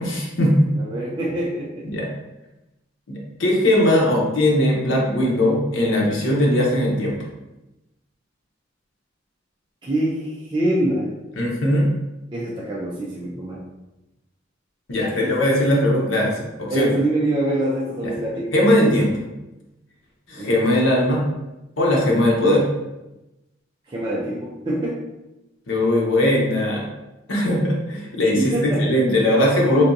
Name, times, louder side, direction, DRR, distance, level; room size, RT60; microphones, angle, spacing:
voice 1, 0.0-0.7 1.8-2.1 3.1-7.2 11.4-11.9 14.9-16.9 18.0-18.1 18.5-19.2 20.3-21.2 21.8-22.7 25.7-26.9 27.3-29.8, left 1 dB, 85° left, -2 dB, 0.9 m, -19 dB
voice 2, 0.7-1.8 9.8-11.2 12.3-13.7 15.1-15.8 16.7-18.5 20.4-20.5 23.9-25.1 28.3-28.8, right 1 dB, 25° right, -7 dB, 0.5 m, -25 dB
3.4 x 2.7 x 2.6 m, 0.96 s
head